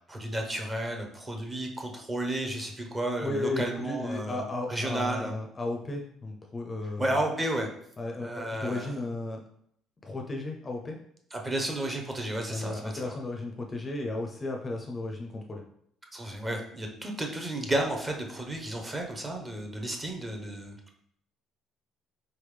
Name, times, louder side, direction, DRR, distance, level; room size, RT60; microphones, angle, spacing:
voice 1, 0.1-5.3 7.0-7.7 8.2-8.9 11.3-13.2 16.1-20.7, right 1 dB, 15° right, 2 dB, 0.7 m, -32 dB
voice 2, 3.2-7.2 8.0-9.4 10.0-11.0 12.5-15.6, left 2 dB, 20° left, 1 dB, 0.5 m, -34 dB
4.1 x 3.4 x 3.2 m, 0.68 s
cardioid pair, 140°, 0 cm